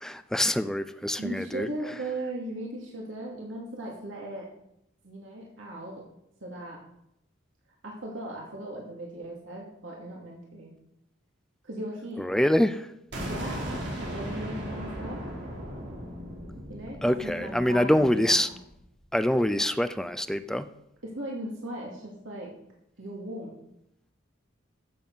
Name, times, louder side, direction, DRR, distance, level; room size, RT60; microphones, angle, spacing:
voice 1, 0.0-1.9 12.2-12.9 17.0-18.5 19.1-20.7, left 1 dB, 5° left, 11 dB, 0.4 m, -25 dB
voice 2, 1.2-4.5 5.0-6.0 6.4-6.8 7.8-10.7 11.6-12.2 13.2-15.2 16.7-18.4 21.0-22.5 23.0-23.5, right 1 dB, 80° right, -2 dB, 2.5 m, -38 dB
sound 1, 13.1-18.9, equal, 65° right, 4.2 m, -37 dB
14.5 x 7.4 x 5.6 m, 0.80 s
head